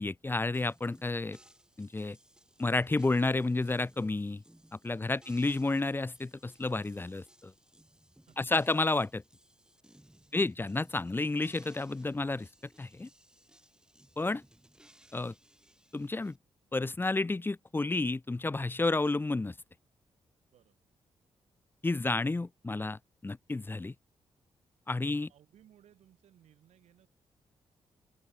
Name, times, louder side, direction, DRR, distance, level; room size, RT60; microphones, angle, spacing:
voice 1, 0.0-1.4 1.8-2.2 2.6-4.4 4.8-7.5 8.4-9.2 10.3-12.5 12.8-13.1 14.2-14.4 15.1-15.3 15.9-16.3 16.7-19.5 21.8-23.9 24.9-25.3, left 2 dB, 20° left, 0.5 m, -31 dB
sound 1, 0.5-16.4, right 1 dB, 5° right, 2.7 m, -62 dB
voice 2, 8.3-8.7 10.3-10.5 20.5-20.8 25.3-27.1, right 10 dB, 80° right, 4.7 m, -63 dB
open air
supercardioid pair, 55°, 11 cm